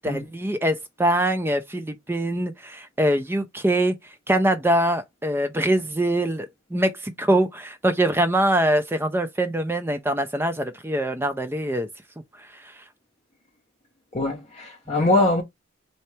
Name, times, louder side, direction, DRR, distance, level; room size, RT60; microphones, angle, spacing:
voice 1, 0.0-3.9 4.3-11.9, right 1 dB, 10° right, 0.5 m, -23 dB
voice 2, 14.1-15.4, left 2 dB, 35° left, 0.7 m, -22 dB
4.2 x 2.8 x 3.3 m
head